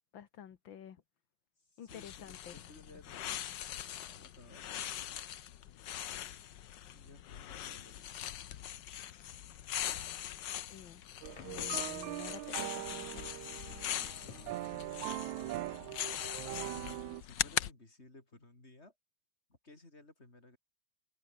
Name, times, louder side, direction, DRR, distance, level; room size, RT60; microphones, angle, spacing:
voice 1, 0.1-1.0 1.8-2.6 10.7-11.0 11.4-13.5, left 9 dB, 50° left, 1.8 m, -51 dB
voice 2, 1.6-4.7 6.9-8.4 14.2-15.0 16.7-18.9 19.5-20.6, left 2 dB, 20° left, 5.0 m, -58 dB
sound 1, 1.9-17.7, left 11 dB, 90° left, 0.9 m, -41 dB
sound 2, 8.3-16.5, left 11 dB, 70° left, 2.7 m, -59 dB
sound 3, 11.2-17.2, right 17 dB, 80° right, 2.1 m, -41 dB
omnidirectional pair, 3.3 m